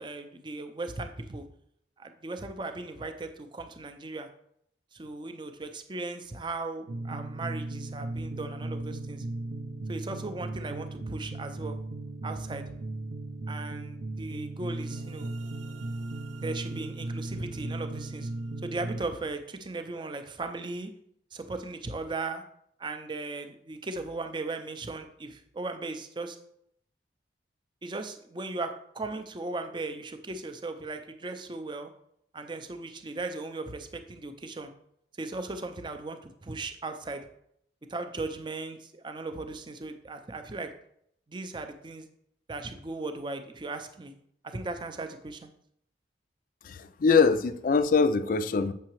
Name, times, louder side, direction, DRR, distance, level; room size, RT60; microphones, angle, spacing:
voice 1, 0.0-1.5 2.0-4.3 4.9-9.3 9.9-11.8 12.2-12.6 13.5-15.3 16.4-18.3 18.6-20.9 21.3-22.4 22.8-26.4 27.8-31.9 32.3-34.7 35.2-37.3 37.9-40.7 41.3-42.1 42.5-44.1 44.4-45.5, right 3 dB, 25° right, 7 dB, 0.5 m, -37 dB
sound 1, 6.9-19.0, right 2 dB, 85° right, 0.5 m, -36 dB
voice 2, 46.6-48.7, left 5 dB, 45° left, 12 dB, 0.3 m, -23 dB
7.4 x 5.7 x 3.0 m, 0.72 s
head